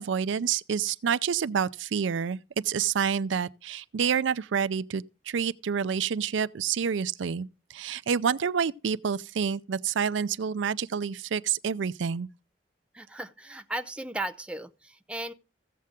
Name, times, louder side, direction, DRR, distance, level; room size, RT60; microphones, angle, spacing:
voice 1, 0.0-12.3, right 7 dB, 85° right, 0.4 m, -28 dB
voice 2, 12.9-15.3, right 1 dB, 5° right, 0.5 m, -36 dB
15.5 x 7.5 x 3.7 m
head